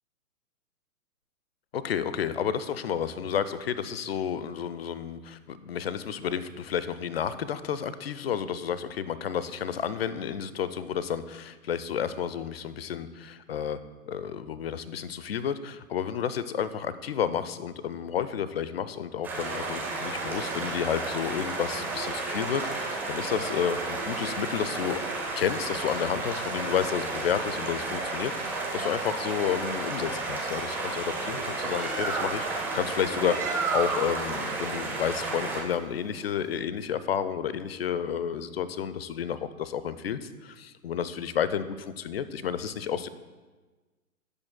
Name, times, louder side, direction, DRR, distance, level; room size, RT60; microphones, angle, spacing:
voice 1, 1.7-13.8 14.1-25.0 25.4-43.1, left 8 dB, 45° left, 14 dB, 0.6 m, -31 dB
sound 1, 19.2-35.6, right 3 dB, 5° right, 0.7 m, -32 dB
Bird, 31.4-36.6, right 4 dB, 80° right, 1.5 m, -35 dB
18.0 x 8.1 x 2.2 m, 1.3 s
figure-of-eight pair, 125°, 44 cm